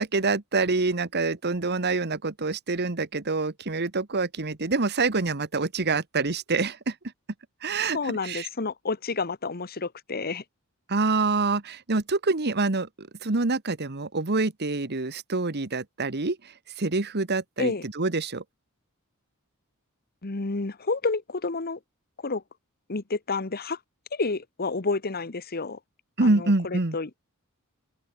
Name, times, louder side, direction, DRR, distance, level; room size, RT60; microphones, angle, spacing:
voice 1, 0.0-6.9 7.6-8.5 10.9-16.4 16.8-18.4 26.2-27.0, right 3 dB, 50° right, 1.4 m, -26 dB
voice 2, 7.9-10.4 17.6-17.9 20.2-21.8 22.2-22.4 22.9-23.8 24.1-25.8 26.2-27.1, left 3 dB, 45° left, 1.2 m, -30 dB
open air
head